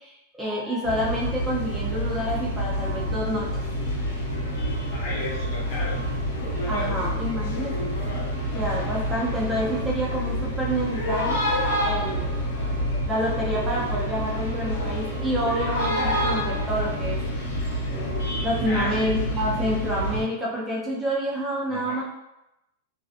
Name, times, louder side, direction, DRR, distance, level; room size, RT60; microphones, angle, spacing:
voice 1, 0.0-3.5 6.7-7.9 8.5-11.4 11.8-12.3 13.1-17.2 18.4-22.0, equal, 10° right, -5 dB, 0.4 m, -28 dB
sound 1, 0.8-20.2, equal, 70° left, 0.7 m, -27 dB
voice 2, 4.9-6.0 6.4-7.0 18.6-19.1 20.1-20.2 21.7-22.0, left 1 dB, 35° left, -6 dB, 1.1 m, -34 dB
2.7 x 2.0 x 2.4 m, 0.89 s
supercardioid pair, 170°, 0 cm